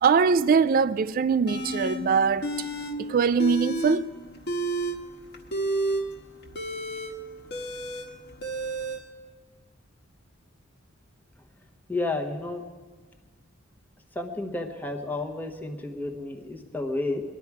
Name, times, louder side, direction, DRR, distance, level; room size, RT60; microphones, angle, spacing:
voice 1, 0.0-2.5 3.0-4.1, right 5 dB, 45° right, 0.3 m, -22 dB
sound 1, 1.5-2.0 2.4-2.9 3.2-4.0 4.4-9.0, right 1 dB, 55° left, 1.4 m, -30 dB
voice 2, 11.9-12.6 14.1-17.2, left 2 dB, 10° left, 1.0 m, -31 dB
21.0 x 12.0 x 4.8 m
head